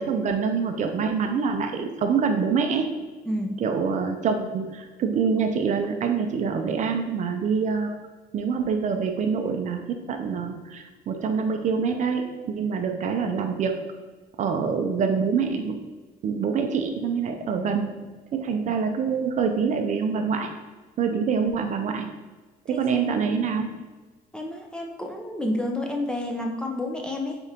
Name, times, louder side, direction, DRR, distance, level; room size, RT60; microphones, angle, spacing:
voice 1, 0.0-2.9 3.6-8.0 8.3-13.8 14.4-15.8 16.2-17.9 18.3-20.5 21.0-22.1 22.7-23.8, right 5 dB, 45° right, 5 dB, 0.5 m, -25 dB
voice 2, 24.3-27.4, left 1 dB, 5° left, 1 dB, 0.5 m, -30 dB
4.3 x 2.9 x 3.7 m, 1.2 s
cardioid pair, 110°, 17 cm